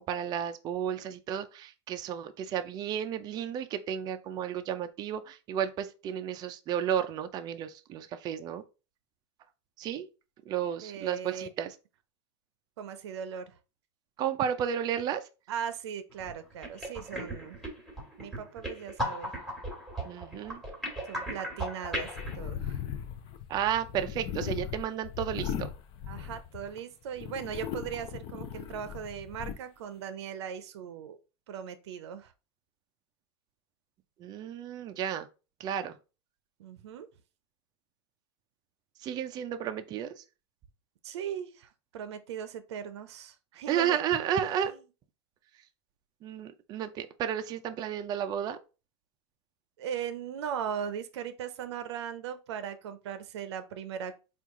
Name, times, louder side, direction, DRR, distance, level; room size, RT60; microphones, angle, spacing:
voice 1, 0.0-8.6 9.8-10.1 10.5-11.7 14.2-15.2 20.0-20.6 23.5-25.7 34.2-35.3 35.6-36.0 39.0-40.2 43.7-44.7 46.2-48.6, right 9 dB, 30° right, 0.4 m, -32 dB
voice 2, 10.8-11.5 12.8-13.5 15.5-17.6 18.2-19.3 21.1-22.8 26.1-31.2 31.5-32.3 36.6-37.1 41.0-44.0 44.5-44.8 49.8-54.1, right 8 dB, 75° right, 0.6 m, -38 dB
sound 1, 16.1-16.3 16.6-22.4, equal, ahead, 1.4 m, -37 dB
sound 2, 22.0-26.8 27.2-29.6, left 9 dB, 35° left, 0.6 m, -38 dB
4.5 x 2.4 x 3.6 m
supercardioid pair, 130°, 14 cm